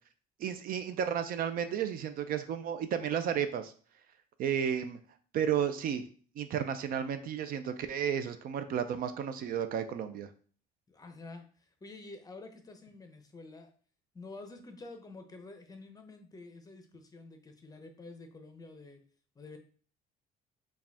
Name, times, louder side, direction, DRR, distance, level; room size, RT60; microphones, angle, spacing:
voice 1, 0.4-3.7 4.4-5.0 5.3-6.0 6.4-10.3, right 8 dB, 60° right, 10 dB, 0.4 m, -32 dB
voice 2, 10.9-13.7 14.1-19.0 19.4-19.6, left 3 dB, 20° left, 6 dB, 0.6 m, -49 dB
4.7 x 2.3 x 3.4 m, 0.43 s
cardioid pair, 110°, 17 cm